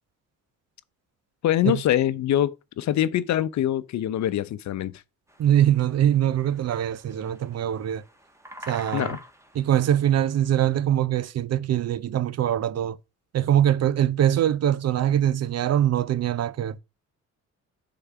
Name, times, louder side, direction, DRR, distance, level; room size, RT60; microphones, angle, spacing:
voice 1, 1.4-4.9 8.9-9.2, left 12 dB, 65° left, 0.7 m, -24 dB
sound 1, 5.3-10.6, equal, 10° right, 1.5 m, -46 dB
voice 2, 5.4-8.0 8.7-9.2 9.6-13.0 13.3-16.8, right 11 dB, 55° right, 0.6 m, -23 dB
6.7 x 3.9 x 5.9 m
cardioid pair, 90°, 30 cm